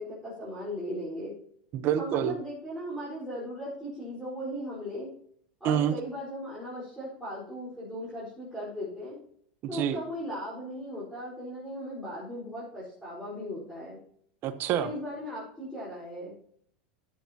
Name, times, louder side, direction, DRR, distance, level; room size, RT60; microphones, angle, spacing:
voice 1, 0.0-1.3 2.0-5.1 5.6-9.2 9.7-14.0 14.8-16.3, equal, ahead, -9 dB, 4.5 m, -37 dB
voice 2, 1.7-2.3 5.6-6.0 9.6-10.0 14.4-14.9, right 10 dB, 40° right, 8 dB, 1.0 m, -27 dB
13.5 x 8.2 x 2.9 m, 0.66 s
supercardioid pair, 140°, 6 cm